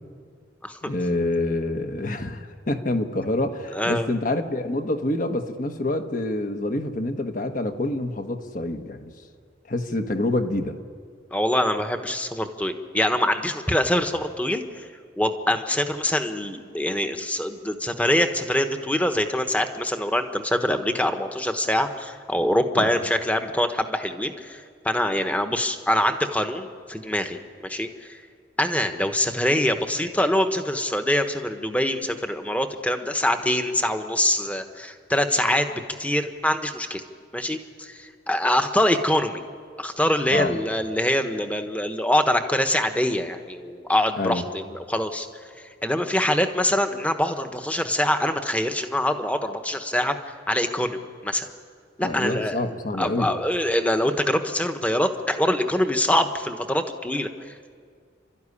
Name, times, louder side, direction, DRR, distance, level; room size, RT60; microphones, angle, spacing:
voice 1, 0.8-9.1 9.7-10.8 22.7-23.0 40.3-40.6 44.2-44.4 52.0-53.3, left 2 dB, 45° left, 6 dB, 1.4 m, -27 dB
voice 2, 3.7-4.1 11.3-14.6 15.2-28.2 28.6-37.0 37.3-39.4 39.8-45.3 45.8-50.2 50.5-51.5 52.0-52.6 53.0-57.3, left 1 dB, 10° left, 7 dB, 1.1 m, -24 dB
30.0 x 13.0 x 9.9 m, 2.1 s
head